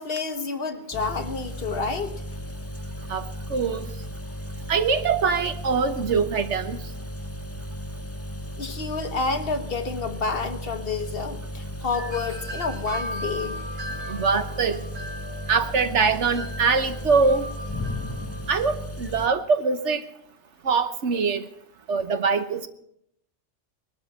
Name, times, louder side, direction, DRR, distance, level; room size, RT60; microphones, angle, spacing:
voice 1, 0.0-2.1 8.6-13.7, left 4 dB, 50° left, 7 dB, 1.3 m, -29 dB
sound 1, 0.9-19.3, equal, 15° left, 0.6 m, -35 dB
voice 2, 3.5-3.9 4.7-6.8 14.1-14.8 15.5-17.4 18.5-20.0 20.6-21.4 21.9-22.7, right 5 dB, 70° right, 9 dB, 1.3 m, -23 dB
Wind chime, 11.9-18.6, equal, 90° right, 2.8 m, -38 dB
20.5 x 12.5 x 4.2 m, 0.74 s
omnidirectional pair, 1.3 m